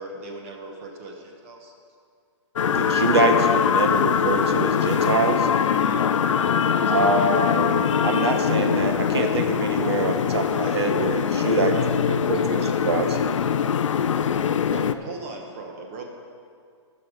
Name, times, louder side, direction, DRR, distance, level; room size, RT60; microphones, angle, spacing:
voice 1, 0.0-1.7 5.8-6.1 6.7-7.3 14.6-16.1, right 2 dB, 30° right, 2 dB, 1.1 m, -38 dB
sound 1, 2.6-14.9, left 7 dB, 85° left, 0.6 m, -22 dB
voice 2, 2.7-5.5 6.9-11.8 12.1-13.1, right 4 dB, 60° right, 5 dB, 1.1 m, -25 dB
voice 3, 10.5-14.4, left 4 dB, 25° left, 0 dB, 1.5 m, -39 dB
15.0 x 6.5 x 5.0 m, 2.2 s
hypercardioid pair, 170°, 16 cm